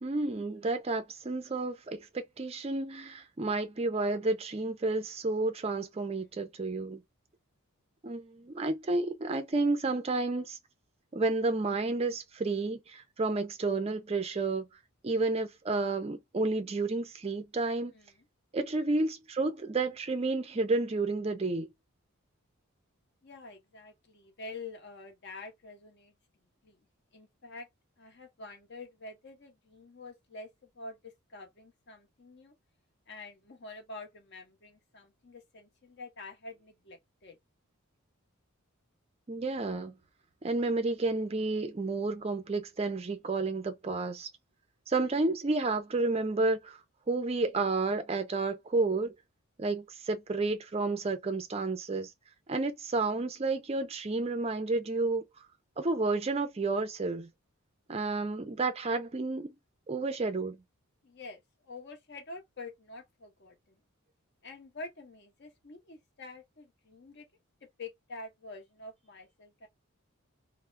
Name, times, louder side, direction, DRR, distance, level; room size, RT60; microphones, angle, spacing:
voice 1, 0.0-7.0 8.0-10.6 11.1-14.7 15.0-17.9 18.5-21.7 39.3-40.0 40.4-44.3 44.9-46.8 47.1-49.1 49.6-52.1 52.5-55.3 55.8-57.3 57.9-59.5 59.9-60.6, right 3 dB, 25° right, 0.4 m, -31 dB
voice 2, 23.2-26.1 26.6-26.8 27.1-27.7 28.0-30.5 30.7-32.5 33.1-37.4 61.0-63.8 64.4-67.3 67.8-69.7, left 3 dB, 50° left, 0.8 m, -47 dB
2.3 x 2.0 x 3.1 m
head